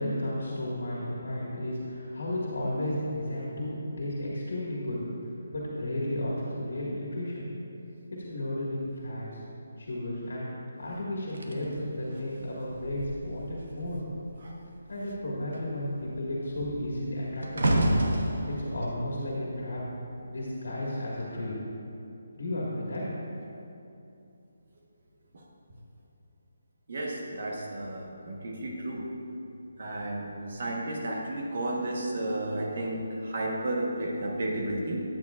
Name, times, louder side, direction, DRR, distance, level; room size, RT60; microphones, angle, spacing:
voice 1, 0.0-5.0 5.5-7.5 8.1-9.4 9.8-10.5 10.8-14.0 14.9-17.9 18.6-19.8 20.2-21.5 22.4-23.0, left 1 dB, 75° left, -5 dB, 1.8 m, -33 dB
sound 1, 11.3-14.1 14.4-14.7 15.1-20.4 21.1-21.4, right 1 dB, 85° right, 1.1 m, -31 dB
voice 2, 26.9-29.0 29.8-35.0, right 1 dB, 40° right, -1 dB, 1.2 m, -32 dB
12.5 x 9.2 x 2.5 m, 2.7 s
hypercardioid pair, 180°, 0 cm